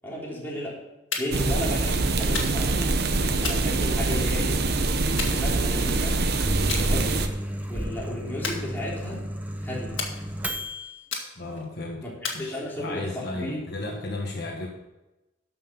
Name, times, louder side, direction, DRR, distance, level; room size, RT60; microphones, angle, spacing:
voice 1, 0.0-0.8 1.2-4.6 5.2-6.2 6.8-7.1 7.7-9.2 9.6-10.0 12.0-12.1 12.4-13.9, left 1 dB, 10° left, -5 dB, 3.3 m, -34 dB
sound 1, 1.1-1.5 2.3-2.8 3.4-4.4 5.2-6.0 6.7-6.9 7.3-7.6 8.4-9.2 10.0-10.6 11.1-11.7 12.2-13.0, left 5 dB, 85° left, 2.0 m, -34 dB
sound 2, 1.3-7.3, right 3 dB, 55° right, 0.9 m, -24 dB
Microwave oven, 6.2-11.0, equal, 10° right, 0.8 m, -33 dB
voice 2, 11.3-12.0 12.3-14.7, left 2 dB, 55° left, -1 dB, 1.6 m, -34 dB
13.0 x 5.8 x 5.7 m, 1.0 s
head